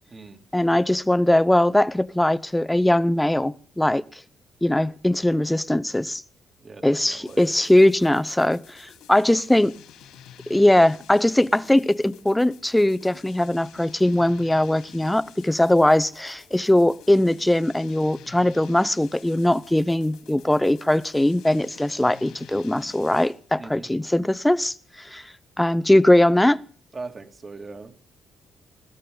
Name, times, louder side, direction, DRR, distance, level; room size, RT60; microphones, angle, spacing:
voice 1, 0.5-4.0 4.6-6.2 6.8-9.8 10.5-25.2 25.6-26.6, left 1 dB, 5° left, 0.8 m, -20 dB
voice 2, 6.6-7.5 23.6-23.9 26.9-27.9, right 3 dB, 35° right, 2.7 m, -40 dB
sound 1, 7.3-23.5, left 9 dB, 85° left, 2.9 m, -49 dB
20.5 x 16.5 x 3.9 m
cardioid pair, 90°, 0 cm